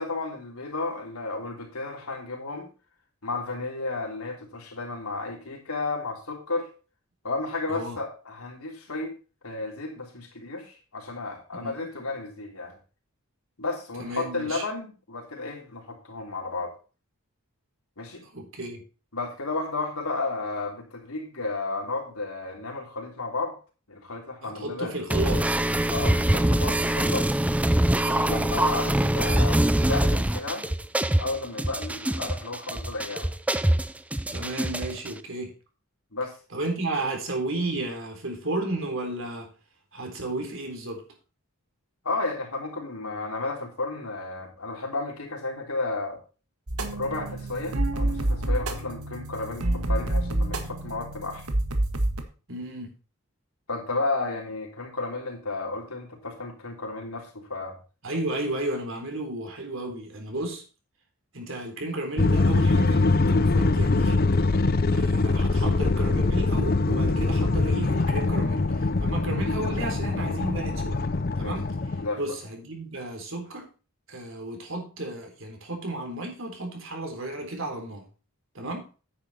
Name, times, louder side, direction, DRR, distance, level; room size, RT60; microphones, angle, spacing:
voice 1, 0.0-2.7 3.2-6.7 7.2-9.1 9.4-12.8 13.6-16.7 18.0-18.3 19.1-23.6 23.9-24.9 25.9-27.3 28.1-30.7 31.2-33.3 36.1-36.3 42.0-46.2 46.9-51.5 53.7-57.8 71.4-71.6 72.0-72.2, left 3 dB, 80° left, 0 dB, 3.5 m, -32 dB
voice 2, 11.5-11.8 14.0-14.6 18.2-18.8 24.4-25.5 34.3-35.5 36.5-39.5 39.9-41.0 52.5-52.9 58.0-60.6 61.3-64.3 64.9-71.0 71.4-71.7 71.9-73.7 74.1-78.0 78.5-78.9, right 2 dB, 60° right, 2 dB, 3.7 m, -33 dB
sound 1, 25.1-35.1, right 1 dB, 5° right, 0.4 m, -24 dB
sound 2, 46.7-52.2, right 1 dB, 90° right, 1.6 m, -28 dB
sound 3, 62.2-72.1, left 3 dB, 45° left, 0.6 m, -23 dB
9.8 x 9.5 x 4.3 m, 0.35 s
head